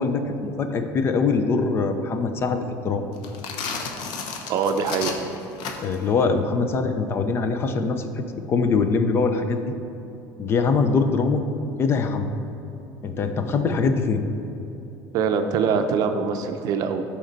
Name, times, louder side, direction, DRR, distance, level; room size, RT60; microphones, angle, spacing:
voice 1, 0.0-3.1 5.8-9.7 10.4-11.5 11.8-12.3 13.0-14.2, left 4 dB, 30° left, 7 dB, 0.5 m, -23 dB
sound 1, 3.1-6.1, left 5 dB, 65° left, 0.9 m, -32 dB
voice 2, 4.5-5.1 15.1-17.0, right 6 dB, 50° right, 7 dB, 0.6 m, -23 dB
12.5 x 4.3 x 4.0 m, 2.9 s
cardioid pair, 160°, 8 cm